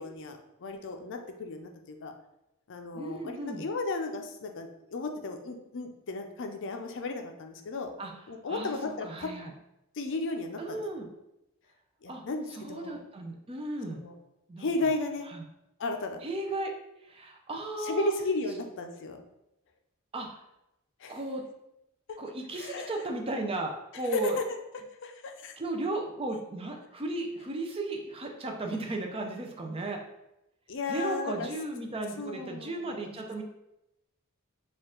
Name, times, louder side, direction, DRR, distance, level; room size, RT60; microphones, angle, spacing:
voice 1, 0.0-2.1 2.7-7.9 8.3-9.3 10.0-10.8 12.0-13.0 13.9-14.1 14.6-15.3 15.8-16.2 17.8-19.2 21.0-21.2 22.5-23.0 24.1-24.3 25.0-25.5 30.7-31.5 32.2-33.1, left 3 dB, 55° left, 5 dB, 0.5 m, -34 dB
voice 2, 2.9-3.7 8.0-8.1 8.5-9.5 10.6-11.1 12.1-12.2 12.5-14.0 14.5-14.7 15.3-15.4 16.2-16.7 17.0-18.1 20.1-20.4 21.1-21.4 22.2-24.4 25.6-30.0 30.9-33.4, right 2 dB, 25° right, 2 dB, 0.5 m, -35 dB
4.4 x 2.4 x 3.7 m, 0.89 s
head